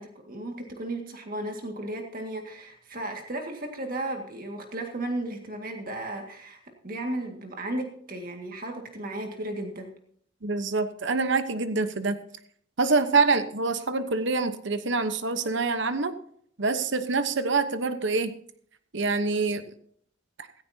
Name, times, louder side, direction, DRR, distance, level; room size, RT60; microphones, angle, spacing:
voice 1, 0.0-9.9, right 1 dB, 45° right, 3 dB, 2.0 m, -35 dB
voice 2, 10.4-12.2 12.8-16.1 16.6-18.3 18.9-19.6, right 4 dB, 65° right, 10 dB, 1.0 m, -25 dB
17.0 x 14.5 x 2.8 m, 0.63 s
head